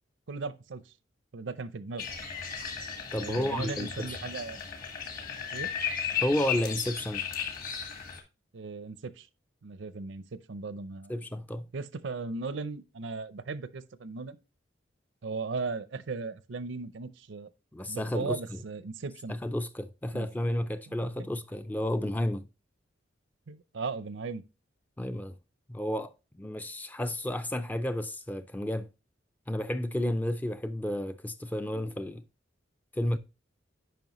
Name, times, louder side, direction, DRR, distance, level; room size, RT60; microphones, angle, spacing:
voice 1, 0.3-0.9 1.3-2.0 3.2-4.6 5.5-5.7 8.5-9.3 9.6-11.1 11.7-14.4 15.2-17.5 17.9-19.4 20.1-20.3 20.9-21.3 23.5-24.4, right 4 dB, 75° right, 0.6 m, -37 dB
sound 1, 2.0-8.2, left 7 dB, 45° left, 1.4 m, -35 dB
voice 2, 3.1-4.2 6.2-7.2 11.1-11.7 17.7-18.4 19.3-22.4 25.0-25.4 25.7-28.9 29.5-32.2 32.9-33.2, left 1 dB, 10° left, 0.3 m, -32 dB
9.2 x 5.3 x 3.0 m
head